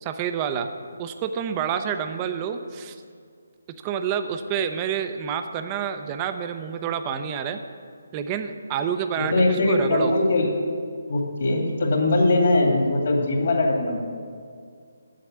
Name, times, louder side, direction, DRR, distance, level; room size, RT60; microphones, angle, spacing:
voice 1, 0.0-0.7 1.0-3.0 3.7-7.6 8.1-10.1, right 8 dB, 25° right, 8 dB, 0.6 m, -28 dB
voice 2, 9.2-10.5 11.1-14.0, left 2 dB, 60° left, 1 dB, 2.3 m, -21 dB
8.2 x 7.6 x 7.4 m, 2.1 s
figure-of-eight pair, 155°, 0 cm